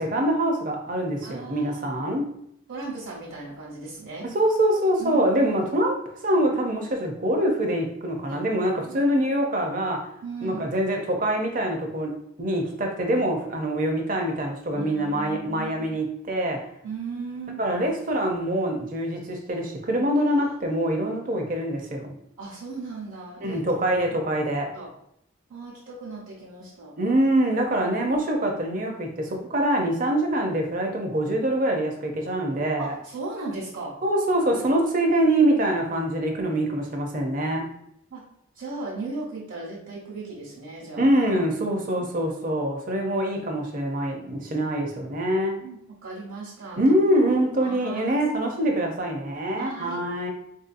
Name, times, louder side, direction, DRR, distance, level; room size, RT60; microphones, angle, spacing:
voice 1, 0.0-2.3 4.2-6.0 6.2-10.1 10.4-16.7 17.6-22.1 23.4-24.7 27.0-32.9 34.0-37.7 41.0-45.6 46.8-50.3, right 1 dB, 40° right, 2 dB, 0.6 m, -24 dB
voice 2, 1.2-2.1 2.7-4.3 5.0-5.5 8.3-8.4 8.8-9.0 10.2-10.6 14.7-16.0 16.8-17.6 22.4-23.6 24.1-24.2 24.7-24.9 25.5-26.9 32.8-34.0 34.6-34.9 36.5-36.6 38.1-38.2 38.5-41.1 45.6-46.8 47.6-48.2 49.6-50.0, right 3 dB, 70° right, -6 dB, 1.1 m, -37 dB
4.3 x 2.7 x 2.5 m, 0.74 s
head